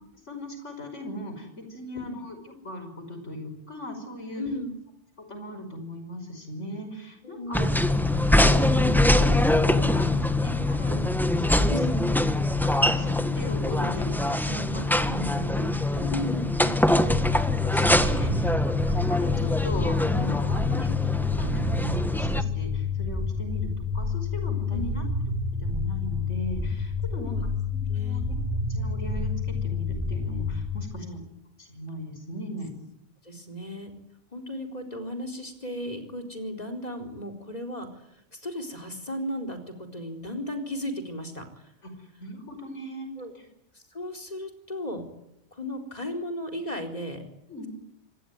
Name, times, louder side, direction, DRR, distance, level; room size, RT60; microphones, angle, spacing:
voice 1, 0.3-4.4 5.3-7.8 8.3-9.4 9.6-11.8 12.6-16.1 17.3-25.0 25.6-28.4 28.7-31.1 31.6-32.7 41.8-43.1 43.3-43.5 47.5-47.7, left 1 dB, 90° left, 6 dB, 5.8 m, -38 dB
voice 2, 4.4-4.7 7.2-7.7 11.7-12.0 16.1-16.7 24.7-25.0 27.1-27.4 27.9-28.2 30.9-31.2 33.2-33.9 34.3-41.7 43.2-43.3 43.7-45.1 45.5-47.2, left 1 dB, 35° left, 4 dB, 4.4 m, -35 dB
sound 1, 7.5-22.4, left 1 dB, ahead, 1.4 m, -24 dB
sound 2, 17.1-30.8, left 4 dB, 15° right, 2.9 m, -29 dB
26.5 x 21.5 x 9.6 m, 0.80 s
omnidirectional pair, 1.2 m